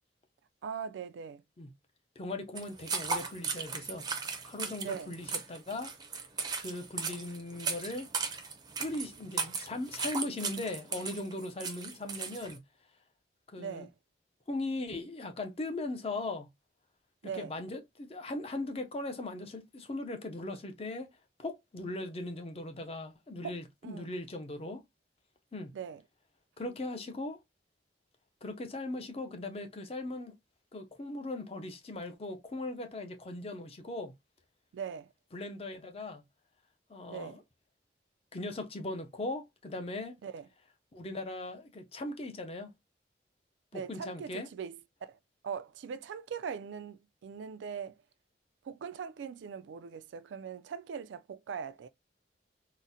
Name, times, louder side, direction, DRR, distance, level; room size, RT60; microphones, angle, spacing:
voice 1, 0.6-1.4 4.8-5.1 13.6-13.9 17.2-17.5 23.4-23.6 23.8-24.1 25.7-26.0 34.7-35.1 37.1-37.4 40.2-40.5 43.7-45.2 45.4-48.0 48.6-51.9, right 7 dB, 85° right, 0.3 m, -41 dB
voice 2, 2.2-4.1 4.4-5.9 6.6-8.1 8.8-12.6 13.5-13.9 14.5-16.5 17.2-21.1 21.4-24.8 25.5-25.7 26.6-27.4 28.4-30.3 30.7-34.1 35.3-36.2 36.9-37.4 38.3-40.2 40.9-42.7 43.7-44.5, left 2 dB, 30° left, 0.5 m, -39 dB
sound 1, 2.6-12.6, right 5 dB, 20° right, 0.5 m, -37 dB
3.9 x 2.1 x 2.6 m
head